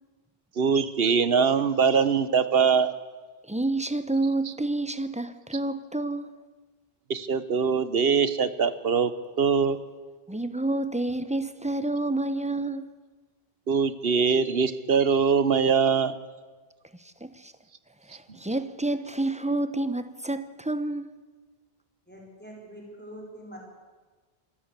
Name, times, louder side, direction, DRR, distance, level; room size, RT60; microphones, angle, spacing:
voice 1, 0.6-2.9 7.1-9.1 9.4-9.8 13.7-16.1, right 6 dB, 70° right, 1.3 m, -22 dB
voice 2, 3.5-6.4 10.3-12.9 16.9-17.5 18.0-21.1, right 2 dB, 5° right, 0.9 m, -29 dB
voice 3, 22.1-23.8, equal, 10° left, 4.8 m, -44 dB
25.0 x 14.0 x 8.3 m
omnidirectional pair, 1.0 m